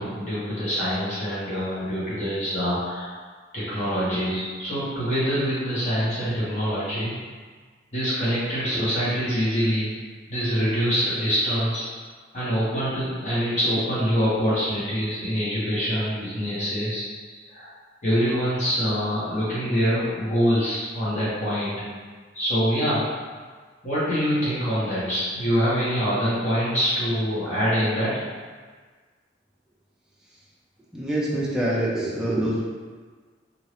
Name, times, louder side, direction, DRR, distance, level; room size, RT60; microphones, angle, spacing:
voice 1, 0.0-3.1 3.5-7.1 7.9-9.9 10.3-11.9 12.3-17.7 18.0-21.7 22.3-23.0 23.8-28.2, equal, 40° left, -11 dB, 1.3 m, -25 dB
voice 2, 30.9-32.6, right 1 dB, 5° right, -6 dB, 0.4 m, -25 dB
2.7 x 2.7 x 3.2 m, 1.5 s
head